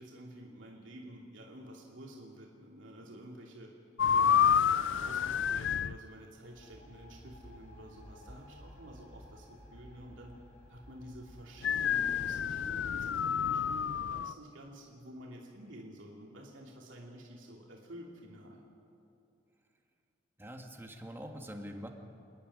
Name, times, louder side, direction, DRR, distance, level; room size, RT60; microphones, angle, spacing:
voice 1, 0.0-3.7 4.0-10.3 10.7-18.6, right 1 dB, 90° right, -2 dB, 2.7 m, -50 dB
sound 1, 4.0-6.0 11.6-14.3, left 8 dB, 75° left, 0.4 m, -29 dB
sound 2, 6.4-14.2, equal, 40° left, 4.2 m, -55 dB
voice 2, 20.4-21.9, equal, 10° right, 3 dB, 1.8 m, -44 dB
28.0 x 10.5 x 9.9 m, 2.6 s
head